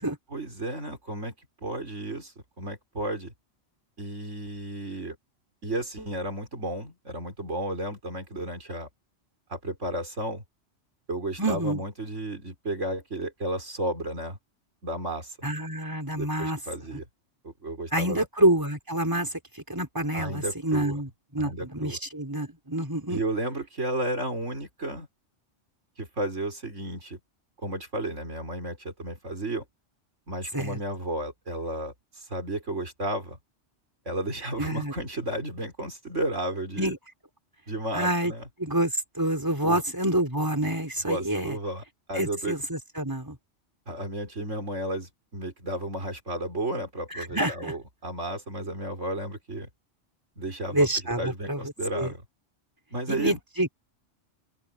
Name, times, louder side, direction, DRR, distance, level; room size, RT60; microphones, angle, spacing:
voice 1, 0.3-1.3 1.6-3.3 4.0-5.2 5.6-8.9 9.5-10.4 11.1-14.4 14.8-15.4 16.1-17.0 17.4-18.3 20.1-21.0 21.4-22.0 23.1-25.1 26.0-27.2 27.6-29.7 30.3-33.4 34.1-36.9 37.7-38.4 39.6-39.8 41.0-42.6 43.9-49.7 50.4-50.9 51.2-52.2 52.9-53.4, right 1 dB, 75° right, 5.4 m, -33 dB
voice 2, 11.4-11.8 15.4-16.6 17.9-23.2 30.5-30.8 34.6-34.9 36.8-37.0 37.9-38.3 38.6-41.6 42.1-43.4 47.1-47.7 50.7-52.1 53.1-53.7, right 1 dB, 15° right, 4.5 m, -27 dB
open air
omnidirectional pair, 1.2 m